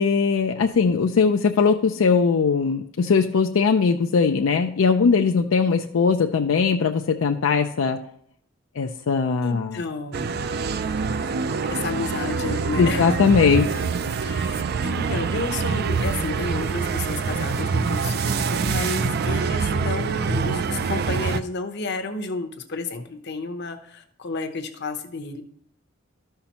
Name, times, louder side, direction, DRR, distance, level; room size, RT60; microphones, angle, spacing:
voice 1, 0.0-8.0 8.8-9.8 12.8-13.9, left 5 dB, 80° left, 4 dB, 0.4 m, -20 dB
voice 2, 9.4-10.4 11.7-13.3 14.2-25.4, left 3 dB, 55° left, 6 dB, 0.8 m, -31 dB
sound 1, 10.1-21.4, right 5 dB, 50° right, 0.4 m, -25 dB
13.0 x 5.7 x 2.9 m, 0.70 s
head